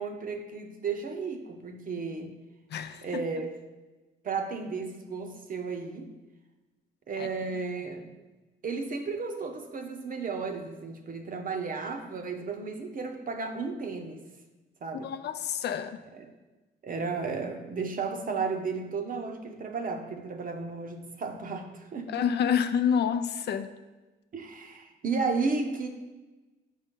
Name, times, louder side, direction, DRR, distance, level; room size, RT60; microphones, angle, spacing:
voice 1, 0.0-2.3 3.0-3.6 4.2-6.1 7.1-8.1 8.6-14.2 14.8-15.1 16.1-16.3 16.8-22.1 24.3-25.9, right 4 dB, 45° right, 5 dB, 0.8 m, -33 dB
voice 2, 2.7-3.2 7.2-7.3 15.0-16.0 22.1-23.7, left 8 dB, 60° left, 10 dB, 0.4 m, -28 dB
5.5 x 5.1 x 3.7 m, 1.1 s
cardioid pair, 90°, 20 cm